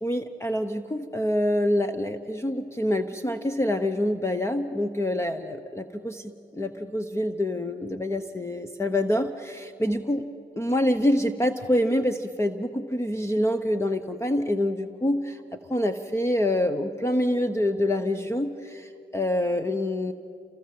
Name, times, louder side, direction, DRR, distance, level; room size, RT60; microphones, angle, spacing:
voice 1, 0.0-10.3 10.6-20.1, left 1 dB, 15° left, 9 dB, 0.9 m, -26 dB
28.5 x 25.0 x 7.7 m, 2.6 s
cardioid pair, 90°, 20 cm